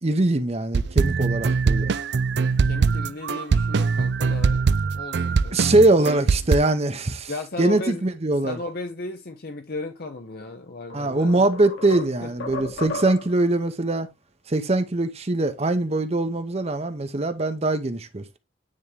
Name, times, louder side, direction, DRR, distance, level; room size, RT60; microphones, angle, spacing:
voice 1, 0.0-1.9 5.5-7.3 7.6-8.6 10.9-14.1 14.5-18.4, right 2 dB, 30° right, 0.7 m, -22 dB
sound 1, 0.7-6.6, right 5 dB, 55° right, 0.4 m, -22 dB
voice 2, 2.6-4.7 4.9-5.9 7.3-8.0 8.4-11.5 12.2-12.3, left 2 dB, 50° left, 0.7 m, -35 dB
sound 2, 10.3-10.4 10.9-13.5, left 2 dB, 70° left, 2.3 m, -35 dB
9.6 x 3.6 x 3.3 m
head